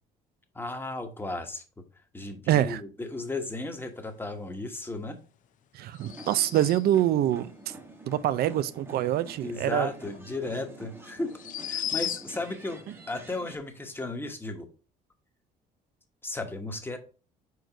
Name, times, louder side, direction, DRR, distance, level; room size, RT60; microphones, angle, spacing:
voice 1, 0.5-1.8 2.1-5.2 9.4-11.4 11.7-12.8 13.1-14.7 16.2-17.0, left 2 dB, 10° left, 1.2 m, -35 dB
voice 2, 2.5-2.8 5.7-7.7 8.1-9.9, right 12 dB, 65° right, 0.5 m, -25 dB
sound 1, 5.9-7.0 10.1-10.2 11.3-12.6, left 10 dB, 50° left, 0.5 m, -35 dB
sound 2, 6.0-13.6, right 2 dB, 15° right, 1.1 m, -48 dB
4.7 x 4.6 x 5.0 m
cardioid pair, 110°, 17 cm